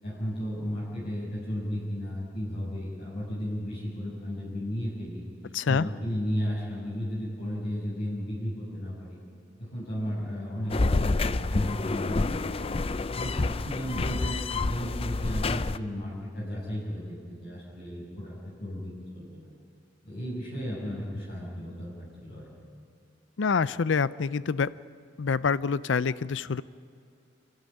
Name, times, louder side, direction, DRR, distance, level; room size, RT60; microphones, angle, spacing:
voice 1, 0.0-5.2 5.7-9.2 9.6-12.6 13.1-19.5 20.0-21.9 22.2-22.5, equal, 60° left, -8 dB, 6.8 m, -34 dB
voice 2, 5.5-5.9 23.4-24.7 25.2-26.6, left 5 dB, 80° left, 17 dB, 0.5 m, -26 dB
sound 1, 10.7-15.8, left 3 dB, 30° left, 0.5 m, -28 dB
28.0 x 13.0 x 10.0 m, 2.5 s
head